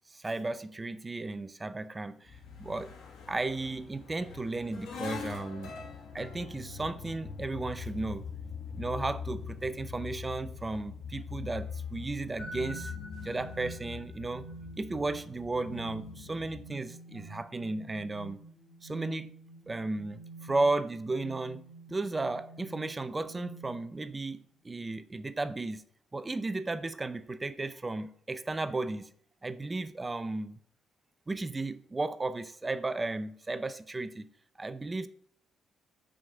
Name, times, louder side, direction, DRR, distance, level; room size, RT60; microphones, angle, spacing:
voice 1, 0.1-2.9 3.3-5.7 6.1-8.3 8.8-12.9 13.2-14.4 14.8-18.4 18.8-19.3 19.7-21.6 21.9-25.8 26.1-29.1 29.4-30.6 31.3-34.3 34.6-35.1, right 2 dB, 20° right, 0.5 m, -34 dB
sound 1, 2.3-16.6, left 6 dB, 70° left, 1.6 m, -43 dB
sound 2, 12.4-24.1, right 2 dB, 25° left, 3.1 m, -48 dB
5.8 x 4.9 x 5.0 m
cardioid pair, 90°, 0 cm